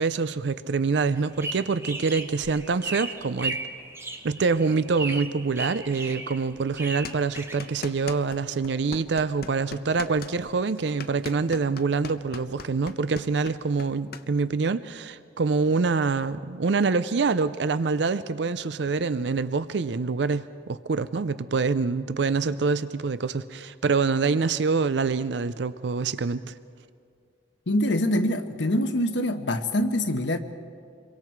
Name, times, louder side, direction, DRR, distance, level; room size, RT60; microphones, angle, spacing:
voice 1, 0.0-3.6 4.2-26.5, right 4 dB, 70° right, 14 dB, 0.5 m, -25 dB
sound 1, 1.2-8.2, right 2 dB, 15° right, 1.0 m, -36 dB
sound 2, 7.0-8.4 8.6-14.2, left 4 dB, 55° left, 0.9 m, -39 dB
voice 2, 27.7-30.4, left 1 dB, 80° left, 8 dB, 1.2 m, -24 dB
26.5 x 23.0 x 4.6 m, 2.2 s
head